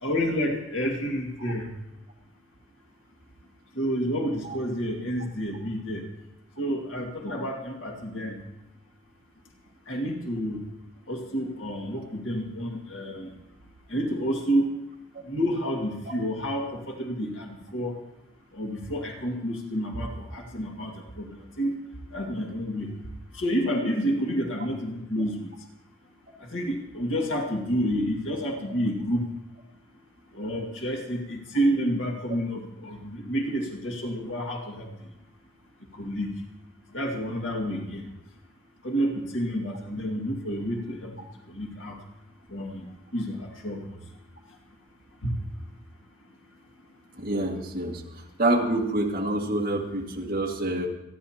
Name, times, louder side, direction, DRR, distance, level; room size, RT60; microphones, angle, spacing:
voice 1, 0.0-1.7 3.8-6.0 6.6-8.4 9.9-10.6 11.1-13.3 13.9-14.7 15.3-18.0 18.5-21.7 22.1-22.9 23.3-25.5 26.5-29.2 30.3-34.9 35.9-36.3 36.9-38.0 38.8-41.1 41.5-42.0 42.5-43.8 45.2-45.3, equal, 75° left, 0 dB, 2.1 m, -29 dB
voice 2, 47.1-50.9, right 1 dB, 50° right, -1 dB, 1.9 m, -27 dB
27.0 x 10.5 x 2.9 m, 0.87 s
head